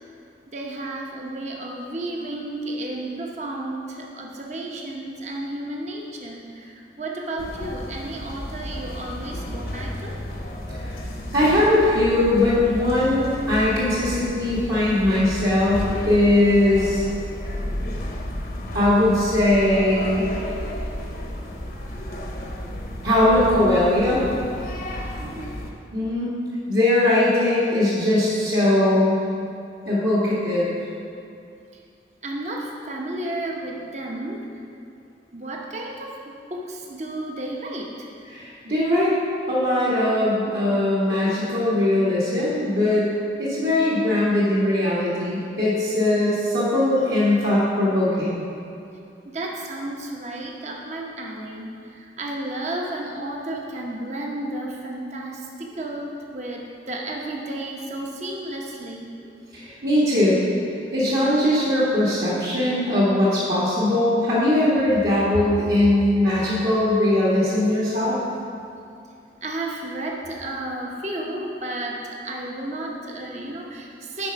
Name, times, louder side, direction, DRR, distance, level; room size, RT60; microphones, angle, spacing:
voice 1, 0.5-10.2 25.2-25.5 32.2-34.6 35.3-38.1 49.2-59.1 69.4-74.3, right 1 dB, 40° right, -1 dB, 0.9 m, -32 dB
sound 1, 7.4-25.7, left 1 dB, 50° left, 0.9 m, -32 dB
voice 2, 11.3-17.0 18.7-20.3 23.0-24.2 25.9-26.3 26.7-29.2 29.9-30.7 38.3-39.1 39.5-43.1 43.4-48.4 59.5-60.4 60.9-68.2, left 1 dB, 60° right, -8 dB, 1.8 m, -20 dB
10.5 x 4.4 x 5.8 m, 2.5 s
head